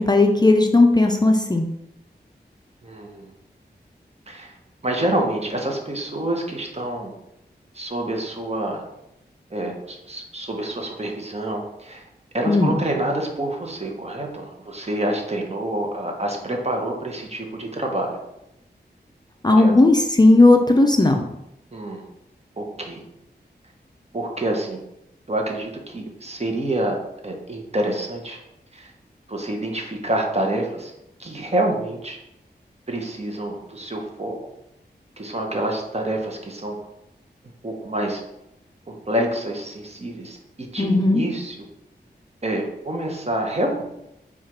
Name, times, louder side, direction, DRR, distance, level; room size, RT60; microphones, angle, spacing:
voice 1, 0.0-1.7 12.5-12.8 19.4-21.3 40.8-41.2, left 2 dB, 25° left, 3 dB, 0.4 m, -15 dB
voice 2, 2.8-3.3 4.3-4.6 4.8-7.1 7.7-8.8 9.5-12.0 12.3-18.2 19.5-19.7 21.7-22.1 22.6-23.0 24.1-24.8 25.3-27.0 27.2-28.4 28.7-28.9 29.3-30.9 31.2-32.2 32.9-34.4 35.2-36.8 37.6-38.2 38.9-41.7 42.4-43.8, right 1 dB, 35° right, 1 dB, 0.9 m, -27 dB
4.5 x 2.4 x 4.5 m, 0.84 s
wide cardioid pair, 60°, 18 cm